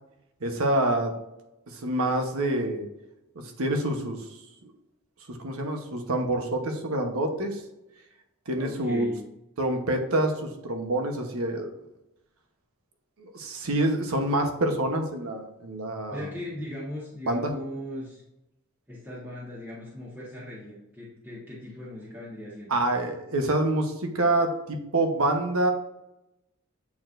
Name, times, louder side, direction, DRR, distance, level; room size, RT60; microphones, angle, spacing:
voice 1, 0.4-1.1 1.7-2.8 3.4-4.2 5.3-7.6 8.5-9.1 9.6-11.7 13.2-16.2 17.3-17.5 22.7-25.7, right 1 dB, 85° right, 4 dB, 1.0 m, -27 dB
voice 2, 8.6-9.2 16.1-18.2 18.9-22.7, left 1 dB, 10° right, -8 dB, 1.3 m, -38 dB
8.3 x 4.4 x 2.6 m, 0.89 s
head